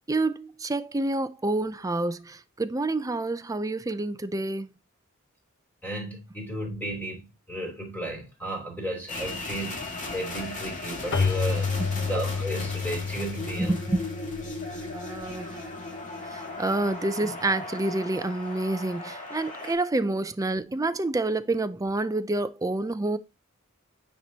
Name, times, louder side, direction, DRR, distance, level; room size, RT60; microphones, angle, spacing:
voice 1, 0.1-4.7 11.8-12.1 13.6-14.1 14.9-15.7 16.3-23.2, right 2 dB, 15° right, 0.5 m, -28 dB
voice 2, 5.8-11.7 12.1-13.8, right 1 dB, 10° left, 3.2 m, -34 dB
sound 1, 9.1-19.8, left 2 dB, 40° left, 1.8 m, -37 dB
Keyboard (musical), 11.1-15.6, left 5 dB, 60° left, 0.9 m, -30 dB
9.2 x 4.4 x 2.8 m
head